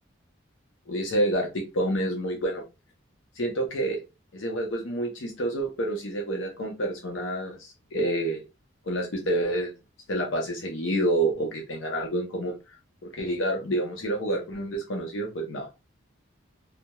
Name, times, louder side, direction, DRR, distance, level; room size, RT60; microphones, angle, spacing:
voice 1, 0.9-2.6 3.4-4.0 4.3-8.4 8.9-9.7 10.1-12.6 13.0-15.7, right 1 dB, 75° left, 1 dB, 0.6 m, -28 dB
2.2 x 2.0 x 2.8 m, 0.26 s
head